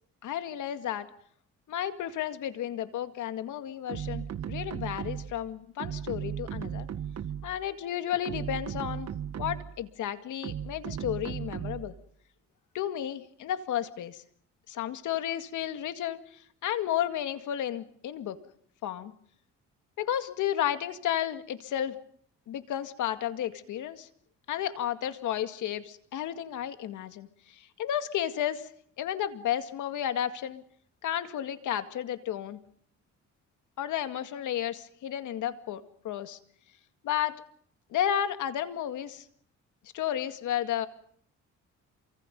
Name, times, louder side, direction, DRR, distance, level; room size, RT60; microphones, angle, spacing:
voice 1, 0.2-1.1 1.7-6.9 7.4-9.1 9.4-11.9 12.7-14.2 14.7-18.4 18.8-19.1 20.0-22.0 22.5-24.1 24.5-28.7 29.0-30.6 31.0-32.6 33.8-36.4 37.0-37.4 37.9-39.3 39.9-40.9, left 10 dB, 80° left, 9 dB, 2.1 m, -32 dB
sound 1, 3.9-5.4 5.8-7.6 8.1-9.8 10.4-12.0, right 9 dB, 60° right, 1.5 m, -36 dB
28.0 x 25.0 x 5.4 m, 0.62 s
cardioid pair, 90°, 30 cm